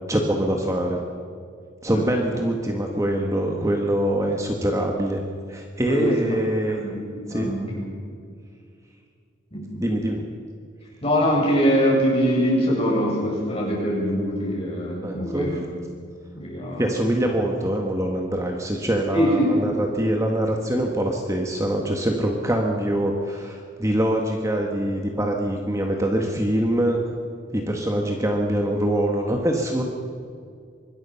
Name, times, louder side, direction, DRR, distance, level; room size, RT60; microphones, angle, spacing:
voice 1, 0.1-1.0 1.8-5.2 5.5-6.8 7.3-7.6 9.8-10.2 15.0-15.5 16.8-27.0 27.5-29.8, right 1 dB, 15° right, 1 dB, 1.6 m, -24 dB
voice 2, 7.3-7.9 9.5-9.8 11.0-15.6 16.3-16.9 19.1-19.4, equal, 30° left, -4 dB, 7.8 m, -23 dB
25.5 x 21.0 x 5.9 m, 2.2 s
head